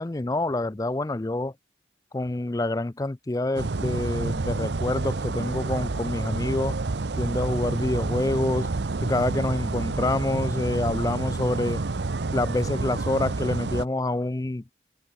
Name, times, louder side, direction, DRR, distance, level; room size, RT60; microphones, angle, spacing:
voice 1, 0.0-1.5 2.1-6.8 7.2-8.7 9.0-11.8 12.3-14.6, left 2 dB, 20° left, 0.4 m, -27 dB
sound 1, 3.6-13.9, right 3 dB, 75° right, 0.7 m, -29 dB
open air
head